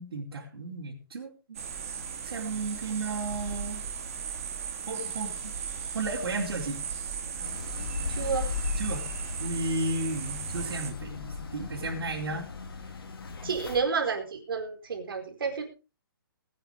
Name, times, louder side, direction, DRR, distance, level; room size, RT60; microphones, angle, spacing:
voice 1, 0.0-1.6 2.2-3.8 4.9-5.5 5.9-6.8 8.8-9.1 9.4-12.5, right 2 dB, 85° right, -4 dB, 4.7 m, -33 dB
sound 1, 1.5-10.9, right 7 dB, 35° right, 3.1 m, -37 dB
sound 2, 7.4-13.8, left 4 dB, 75° left, 3.9 m, -37 dB
voice 2, 8.1-8.5 13.4-15.6, right 5 dB, 70° right, 3 dB, 4.4 m, -30 dB
21.0 x 9.4 x 3.6 m, 0.32 s
hypercardioid pair, 180°, 13 cm